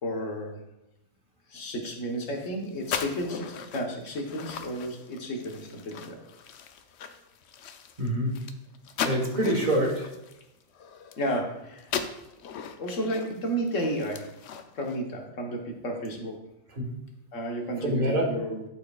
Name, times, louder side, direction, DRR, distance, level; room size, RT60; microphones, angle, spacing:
voice 1, 0.0-0.6 1.5-6.2 11.2-11.9 12.8-14.3 14.7-16.3 17.3-18.7, equal, 85° left, 1 dB, 1.5 m, -32 dB
sound 1, 2.1-11.5 11.8-15.0, left 7 dB, 65° left, 0.8 m, -38 dB
voice 2, 8.0-8.4 9.0-10.1 16.7-16.9 17.8-18.2, right 1 dB, 40° right, 0 dB, 1.3 m, -26 dB
11.5 x 4.6 x 2.3 m, 0.92 s
omnidirectional pair, 1.3 m